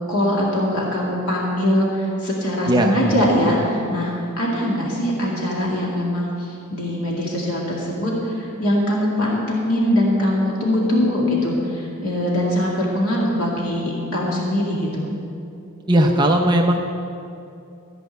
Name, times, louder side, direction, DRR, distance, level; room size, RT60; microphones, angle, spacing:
voice 1, 0.1-15.0, left 1 dB, 80° left, -4 dB, 2.2 m, -22 dB
voice 2, 2.7-3.0 15.9-16.8, right 1 dB, 20° right, 2 dB, 0.6 m, -17 dB
15.0 x 5.3 x 9.2 m, 2.6 s
head